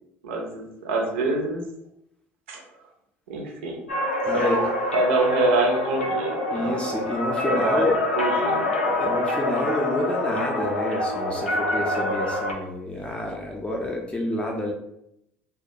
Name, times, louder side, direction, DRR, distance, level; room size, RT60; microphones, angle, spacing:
voice 1, 0.2-1.6 2.5-2.6 3.3-3.8 4.3-4.6 4.9-6.8 7.4-7.9 8.2-9.1, right 2 dB, 75° right, 1 dB, 0.5 m, -26 dB
sound 1, 3.9-12.5, left 1 dB, 90° left, 0.4 m, -26 dB
voice 2, 4.2-4.7 6.5-8.0 9.0-14.7, left 2 dB, 15° left, -1 dB, 0.5 m, -28 dB
2.2 x 2.2 x 2.7 m, 0.80 s
figure-of-eight pair, 60°, 6 cm